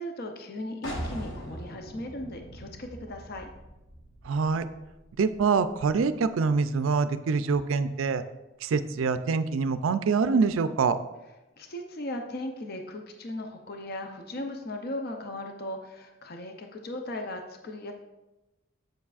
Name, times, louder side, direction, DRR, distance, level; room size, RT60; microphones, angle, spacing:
voice 1, 0.0-3.5 11.6-17.9, left 1 dB, 50° left, 4 dB, 0.6 m, -37 dB
sound 1, 0.8-6.4, equal, 70° left, 1.3 m, -41 dB
voice 2, 4.2-4.7 5.2-8.2 8.6-11.0, right 5 dB, 75° right, 12 dB, 0.4 m, -25 dB
7.8 x 7.1 x 2.4 m, 1.0 s
head